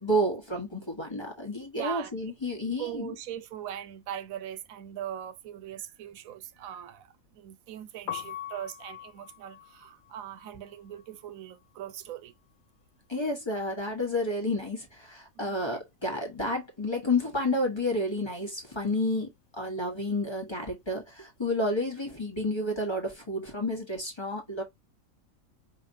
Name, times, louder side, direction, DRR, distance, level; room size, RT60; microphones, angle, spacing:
voice 1, 0.0-3.1 13.1-24.6, left 1 dB, 20° left, 1.2 m, -30 dB
voice 2, 1.7-2.2 2.8-12.3 15.4-15.7, right 10 dB, 90° right, 1.0 m, -40 dB
Piano, 7.9-13.9 14.1-15.7 16.0-22.4, left 11 dB, 85° left, 1.0 m, -45 dB
4.9 x 3.0 x 2.6 m
omnidirectional pair, 1.4 m